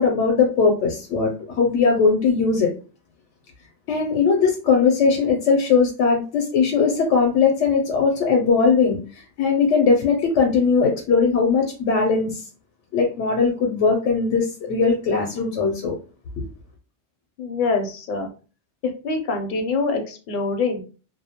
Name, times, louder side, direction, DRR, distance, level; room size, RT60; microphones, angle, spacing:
voice 1, 0.0-2.7 3.9-12.4 12.9-16.0, left 5 dB, 90° left, 1 dB, 0.9 m, -19 dB
voice 2, 17.4-18.3 18.8-20.8, left 4 dB, 60° left, 4 dB, 0.6 m, -25 dB
2.2 x 2.1 x 2.7 m, 0.36 s
omnidirectional pair, 1.2 m